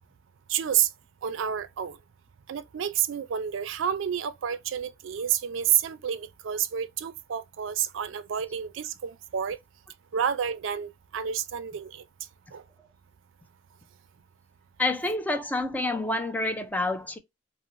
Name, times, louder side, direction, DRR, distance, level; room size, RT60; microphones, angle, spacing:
voice 1, 0.5-0.9 1.2-2.0 2.5-9.6 10.1-12.0 12.5-12.6, right 9 dB, 70° right, 0.4 m, -29 dB
voice 2, 14.8-17.2, left 2 dB, 10° left, 0.4 m, -28 dB
2.5 x 2.0 x 2.9 m
head